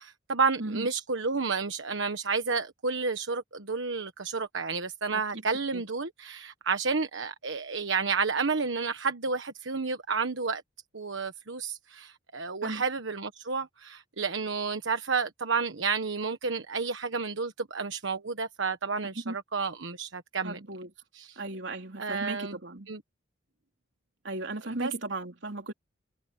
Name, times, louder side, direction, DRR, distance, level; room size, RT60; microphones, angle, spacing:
voice 1, 0.0-10.6 10.9-20.6 21.1-21.4 22.0-22.6 22.9-23.0 24.8-24.9, right 4 dB, 85° right, 1.3 m, -31 dB
voice 2, 20.4-20.9 21.4-22.9 24.2-25.7, right 2 dB, 70° right, 3.5 m, -36 dB
head